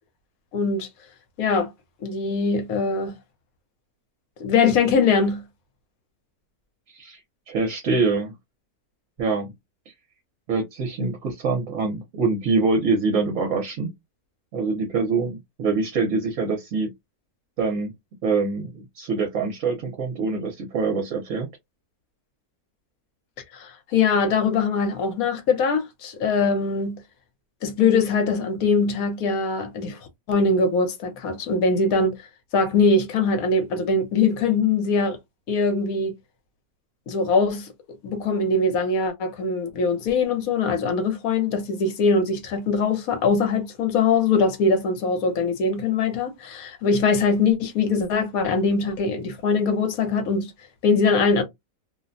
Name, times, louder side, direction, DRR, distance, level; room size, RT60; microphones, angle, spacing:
voice 1, 0.5-0.9 1.4-1.7 2.0-3.2 4.4-5.4 23.5-27.0 27.6-30.0 30.3-32.1 32.5-35.2 35.5-36.1 37.1-37.7 38.0-50.5 50.8-51.4, left 4 dB, 70° left, 1.2 m, -22 dB
voice 2, 7.5-8.3 9.2-9.5 10.5-13.9 14.5-16.9 17.6-17.9 18.2-21.5, right 4 dB, 65° right, 1.1 m, -24 dB
2.8 x 2.1 x 2.5 m
omnidirectional pair, 1.6 m